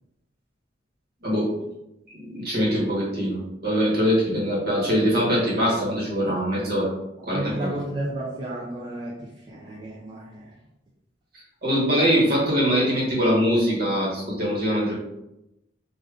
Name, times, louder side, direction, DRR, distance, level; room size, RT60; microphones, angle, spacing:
voice 1, 1.2-1.5 2.1-6.9 7.2-7.7 11.6-14.9, equal, 55° right, -6 dB, 1.2 m, -23 dB
voice 2, 7.3-10.5, right 1 dB, 25° right, -6 dB, 0.4 m, -32 dB
3.4 x 2.5 x 2.4 m, 0.88 s
head